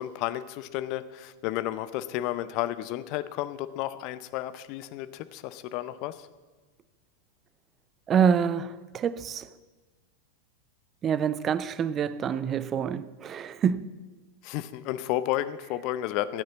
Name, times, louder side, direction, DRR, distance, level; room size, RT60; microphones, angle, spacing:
voice 1, 0.0-6.3 14.4-16.4, left 14 dB, 45° left, 0.7 m, -32 dB
voice 2, 8.1-9.5 11.0-13.9, right 7 dB, 25° right, 0.5 m, -26 dB
13.5 x 9.4 x 7.1 m
figure-of-eight pair, 90°, 0 cm